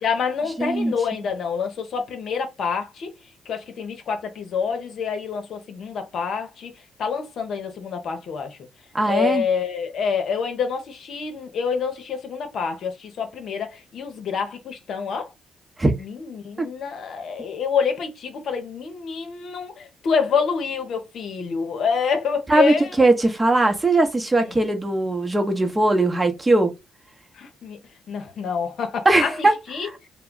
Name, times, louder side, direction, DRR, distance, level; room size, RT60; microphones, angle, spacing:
voice 1, 0.0-3.1 3.5-6.7 7.0-8.6 9.1-15.3 16.0-22.9 27.3-27.8 28.1-29.9, left 6 dB, 65° left, 0.7 m, -27 dB
voice 2, 0.6-0.9 8.9-9.4 15.8-15.9 16.6-16.7 22.5-26.7 29.0-29.5 29.8-29.9, right 2 dB, 20° right, 0.8 m, -19 dB
2.2 x 2.1 x 3.7 m
hypercardioid pair, 50°, 0 cm